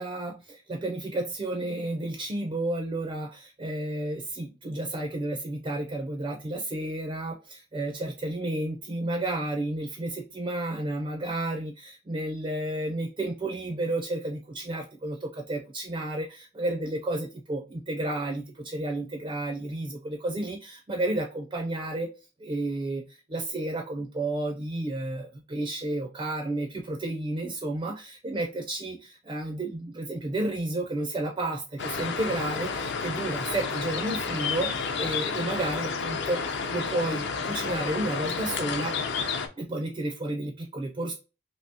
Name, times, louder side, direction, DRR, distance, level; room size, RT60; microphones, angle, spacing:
voice 1, 0.0-22.1 22.4-36.4 36.7-39.0 39.6-41.1, right 2 dB, 25° right, 3 dB, 0.4 m, -31 dB
sound 1, 31.8-39.5, left 5 dB, 55° left, 0.5 m, -31 dB
3.4 x 2.7 x 2.7 m, 0.31 s
head